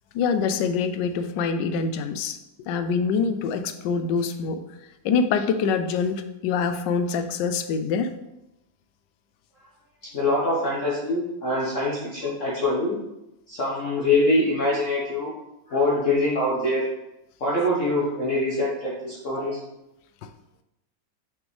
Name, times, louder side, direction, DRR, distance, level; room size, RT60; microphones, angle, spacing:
voice 1, 0.1-4.6 5.0-8.1 10.0-10.1, left 5 dB, 80° left, 9 dB, 1.2 m, -25 dB
voice 2, 10.1-13.0 13.5-15.3 15.7-16.9 17.4-19.6, left 2 dB, 45° left, -6 dB, 1.4 m, -24 dB
6.3 x 5.2 x 3.2 m, 0.91 s
omnidirectional pair, 1.9 m